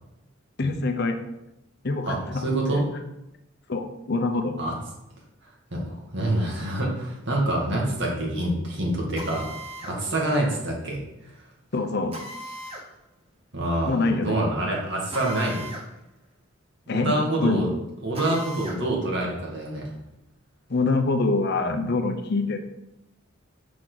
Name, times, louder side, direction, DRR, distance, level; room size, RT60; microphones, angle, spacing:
voice 1, 0.6-1.2 1.8-2.4 3.7-4.6 11.7-12.2 13.9-14.4 16.9-17.1 17.4-17.7 20.7-22.6, left 3 dB, 55° left, 6 dB, 0.8 m, -25 dB
voice 2, 2.1-2.8 4.6-4.7 5.7-9.5 9.8-11.0 13.5-15.7 16.9-17.7 18.0-19.9, right 1 dB, 60° right, -2 dB, 2.1 m, -26 dB
Drill, 9.2-10.0 12.1-12.9 15.1-15.9 16.2-16.3 18.1-18.8, equal, 30° right, 0.9 m, -38 dB
6.4 x 6.0 x 4.0 m, 0.89 s
head